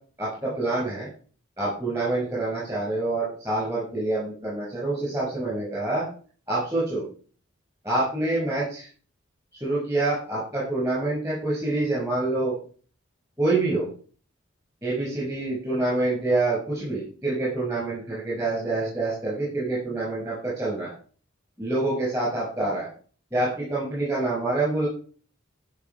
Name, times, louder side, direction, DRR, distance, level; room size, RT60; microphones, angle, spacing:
voice 1, 0.2-1.1 1.6-6.0 6.5-7.0 7.8-8.9 9.5-12.6 13.4-13.9 14.8-20.9 21.6-22.9 23.3-24.9, right 2 dB, 15° right, -7 dB, 6.2 m, -26 dB
14.5 x 6.1 x 4.8 m, 0.42 s
head